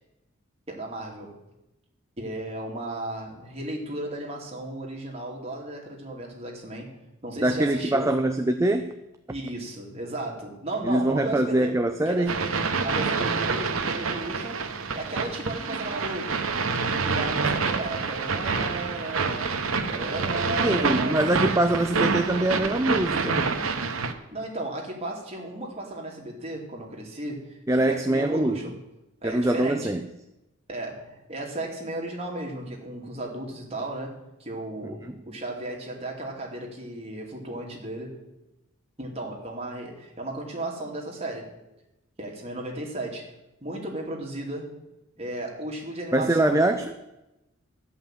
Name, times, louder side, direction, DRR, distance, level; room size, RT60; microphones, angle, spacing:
voice 1, 0.7-1.3 2.2-8.1 9.3-11.7 12.1-14.6 14.9-16.4 17.1-19.5 19.9-21.2 24.3-28.7 29.2-29.9 30.7-34.1 34.4-35.0 35.2-38.2 39.0-41.5 42.2-43.3 43.6-44.7 45.2-46.6, right 1 dB, 30° right, -1 dB, 2.5 m, -35 dB
voice 2, 7.4-8.9 10.8-12.4 20.6-23.4 27.7-28.6 29.2-30.0 35.0-35.2 46.1-46.9, right 1 dB, 15° right, 7 dB, 0.4 m, -23 dB
sound 1, 12.3-24.1, right 4 dB, 85° right, 1.1 m, -27 dB
13.0 x 5.7 x 8.9 m, 0.94 s
head